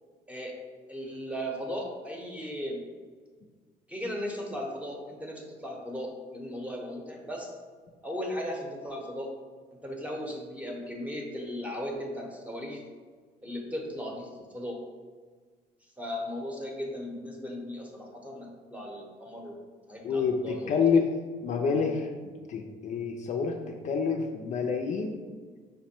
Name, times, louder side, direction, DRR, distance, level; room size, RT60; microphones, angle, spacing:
voice 1, 0.9-2.8 3.9-7.5 8.0-9.3 9.8-12.8 13.4-14.8 16.0-19.6 19.9-20.8, equal, 10° right, 0 dB, 0.8 m, -37 dB
voice 2, 20.0-21.1 21.4-23.5 23.8-25.2, left 5 dB, 45° left, 3 dB, 0.4 m, -28 dB
5.2 x 2.1 x 4.2 m, 1.5 s
cardioid pair, 110°, 17 cm